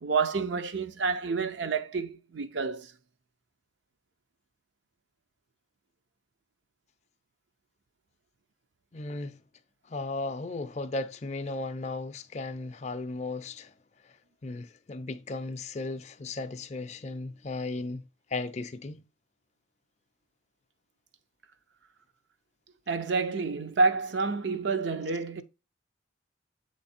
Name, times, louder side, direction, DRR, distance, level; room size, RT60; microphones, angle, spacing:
voice 1, 0.0-2.9 22.9-25.4, right 4 dB, 70° right, 0.6 m, -28 dB
voice 2, 8.9-9.4 9.9-13.7 14.0-14.1 14.4-18.0 18.3-19.0, left 3 dB, 35° left, 0.5 m, -36 dB
7.9 x 3.2 x 4.2 m
head